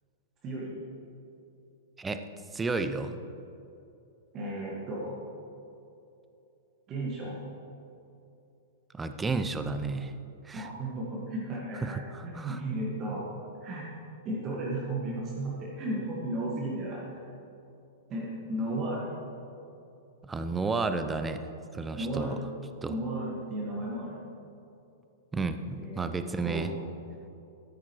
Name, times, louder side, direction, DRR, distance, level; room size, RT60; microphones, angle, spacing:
voice 1, 0.4-0.8 4.3-5.2 6.9-7.4 10.5-13.3 13.6-13.9 14.2-17.2 18.1-19.1 21.9-22.4 22.9-24.2 25.8-26.1 26.4-26.7, right 1 dB, 30° right, -4 dB, 1.7 m, -34 dB
voice 2, 2.5-3.2 8.9-10.1 10.4-10.7 11.8-12.6 20.2-21.4 21.7-22.4 22.8-23.0 25.3-26.7, right 4 dB, 10° right, 9 dB, 0.5 m, -32 dB
12.5 x 10.0 x 3.1 m, 2.8 s
figure-of-eight pair, 100°, 0 cm